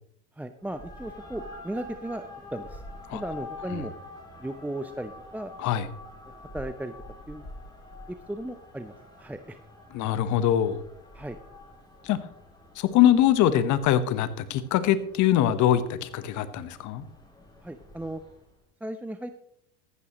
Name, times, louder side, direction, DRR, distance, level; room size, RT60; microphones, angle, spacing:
voice 1, 0.4-2.3 2.5-2.8 3.1-3.9 4.4-5.5 6.2-6.9 7.3-7.5 8.3-9.6 11.1-11.4 17.6-18.2 18.8-19.3, right 1 dB, 5° right, 8 dB, 0.6 m, -36 dB
sound 1, 0.6-18.5, left 2 dB, 10° left, 4.8 m, -47 dB
voice 2, 9.9-10.8 12.0-12.2 12.8-17.1, left 11 dB, 55° left, 13 dB, 1.2 m, -23 dB
14.5 x 11.5 x 3.0 m, 0.69 s
hypercardioid pair, 90°, 35 cm